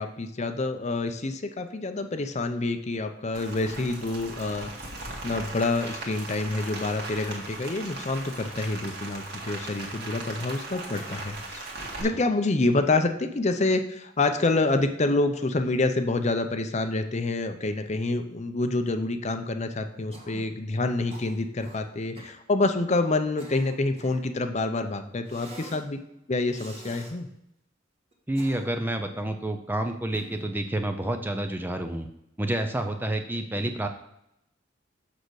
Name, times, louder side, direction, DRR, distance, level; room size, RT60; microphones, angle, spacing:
voice 1, 0.0-4.7 5.2-11.6 12.0-26.0 26.3-27.3, left 2 dB, 35° left, 8 dB, 0.6 m, -27 dB
Rain, 3.3-12.0, right 2 dB, 60° right, 1.9 m, -38 dB
Cough, 20.1-20.5 21.1-21.8 22.1-22.4 23.1-24.3 25.3-25.8 26.5-27.1 28.1-28.9 30.1-30.6, right 2 dB, 30° right, 1.5 m, -45 dB
voice 2, 28.3-32.1 32.4-33.9, right 1 dB, 10° right, 6 dB, 0.5 m, -29 dB
6.6 x 6.5 x 4.7 m, 0.81 s
head